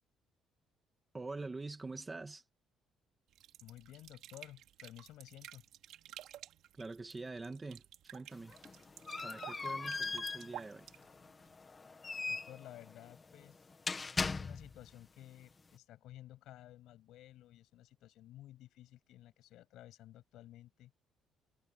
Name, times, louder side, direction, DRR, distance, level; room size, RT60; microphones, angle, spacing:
voice 1, 1.1-2.4 6.7-8.6 9.2-10.9, right 3 dB, 15° right, 1.8 m, -45 dB
sound 1, 3.3-11.5, right 12 dB, 70° right, 3.4 m, -53 dB
voice 2, 3.6-5.7 12.2-13.6 14.2-20.9, left 14 dB, 70° left, 7.7 m, -54 dB
sound 2, 8.3-14.9, left 4 dB, 20° left, 1.8 m, -40 dB
cardioid pair, 180°, 0 cm